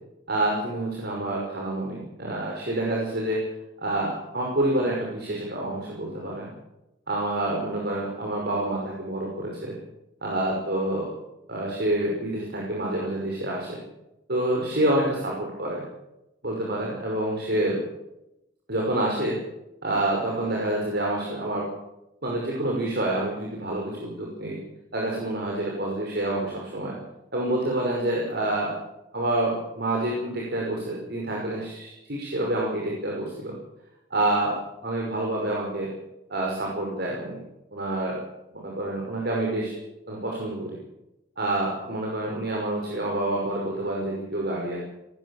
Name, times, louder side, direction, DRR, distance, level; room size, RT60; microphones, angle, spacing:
voice 1, 0.3-3.5 3.8-6.5 7.1-9.8 10.2-11.1 11.5-13.8 14.3-15.9 16.4-17.8 18.7-19.4 19.8-21.7 22.2-24.6 24.9-27.0 27.3-28.8 29.1-33.6 34.1-34.6 34.8-35.9 36.3-37.4 37.7-38.2 38.5-39.7 40.1-40.8 41.4-44.8, right 1 dB, 60° right, -2 dB, 5.8 m, -27 dB
19.5 x 18.5 x 7.4 m, 0.89 s
head